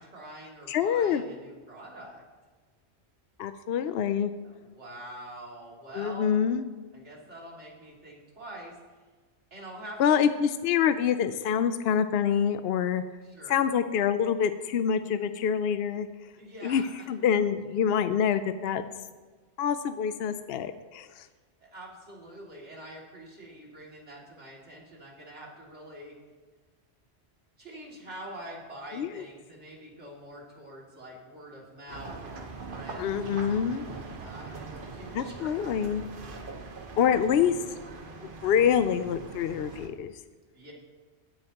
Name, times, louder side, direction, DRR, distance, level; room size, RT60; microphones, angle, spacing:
voice 1, 0.0-2.2 3.7-3.8 4.4-6.4 6.9-8.8 9.5-10.2 13.2-13.7 16.4-17.1 21.6-26.2 27.6-35.9 40.5-40.7, right 1 dB, 85° right, -3 dB, 2.9 m, -45 dB
voice 2, 0.7-1.2 3.4-4.3 5.9-6.6 10.0-13.0 13.5-16.1 16.6-16.8 17.1-18.8 19.6-21.3 28.9-29.2 33.0-33.8 35.1-36.0 37.0-37.6 38.2-40.1, left 8 dB, 65° left, 10 dB, 0.8 m, -26 dB
sound 1, 31.9-39.9, right 4 dB, 50° right, 1.3 m, -42 dB
17.0 x 9.8 x 2.9 m, 1.4 s
omnidirectional pair, 1.2 m